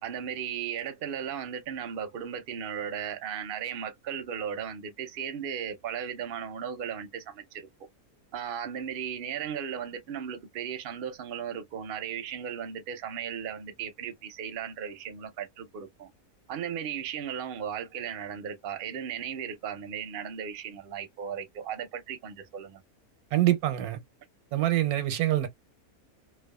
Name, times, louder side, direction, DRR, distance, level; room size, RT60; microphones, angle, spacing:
voice 1, 0.0-7.7 8.3-16.1 16.5-22.8, right 8 dB, 55° right, 0.6 m, -36 dB
voice 2, 23.3-24.0 24.5-25.5, right 14 dB, 85° right, 1.1 m, -25 dB
2.4 x 2.3 x 2.2 m
omnidirectional pair, 1.6 m